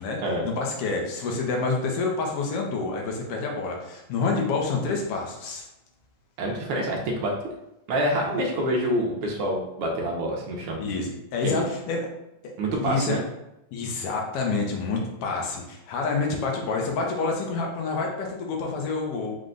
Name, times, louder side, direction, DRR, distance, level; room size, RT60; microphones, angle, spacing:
voice 1, 0.4-5.6 8.3-8.4 10.8-12.1 12.7-13.2 13.7-19.3, left 4 dB, 70° left, 0 dB, 1.4 m, -28 dB
voice 2, 6.4-7.3 7.9-10.8 11.4-11.6 12.6-13.2, right 1 dB, 80° right, -1 dB, 1.3 m, -26 dB
4.9 x 2.2 x 3.8 m, 0.88 s
omnidirectional pair, 3.3 m